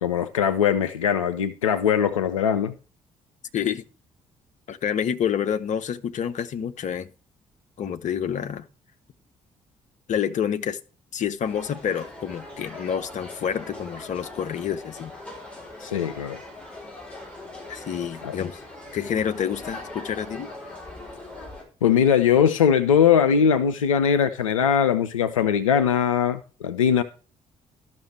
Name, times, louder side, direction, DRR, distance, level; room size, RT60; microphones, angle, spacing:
voice 1, 0.0-2.7 15.8-16.4 18.2-18.4 21.8-27.0, left 8 dB, 80° left, 0.4 m, -21 dB
voice 2, 3.5-3.8 4.7-7.1 7.8-8.7 10.1-10.8 11.1-15.1 17.7-18.6 18.9-20.5, left 8 dB, 45° left, 0.7 m, -28 dB
sound 1, 11.4-21.6, left 2 dB, 5° left, 4.6 m, -41 dB
13.0 x 6.0 x 4.5 m
figure-of-eight pair, 40°, 17 cm